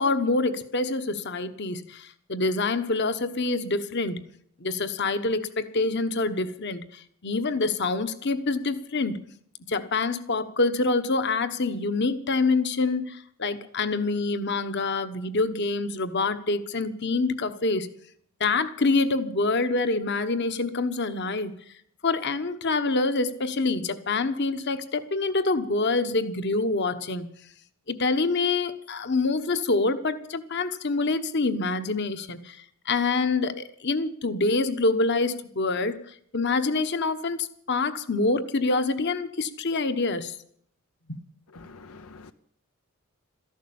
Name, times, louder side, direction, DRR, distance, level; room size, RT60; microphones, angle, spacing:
voice 1, 0.0-4.2 4.6-9.2 9.7-17.9 18.4-21.5 22.0-27.3 27.9-32.6 32.9-40.4 41.1-41.2 41.5-41.7, left 3 dB, 50° left, 1.1 m, -26 dB
voice 2, 41.5-42.3, left 4 dB, 85° left, 0.7 m, -47 dB
14.0 x 11.5 x 8.5 m
head